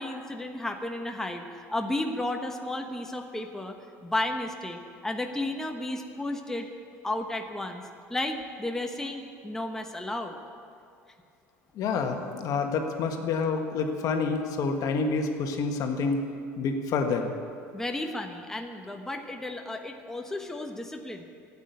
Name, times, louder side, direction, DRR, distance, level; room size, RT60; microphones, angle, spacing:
voice 1, 0.0-6.7 7.0-7.8 8.1-10.4 17.7-21.2, left 1 dB, 5° left, 3 dB, 1.2 m, -33 dB
voice 2, 11.7-16.2 16.6-17.3, left 4 dB, 55° left, 4 dB, 1.6 m, -28 dB
12.5 x 8.7 x 9.6 m, 2.4 s
supercardioid pair, 85°, 7 cm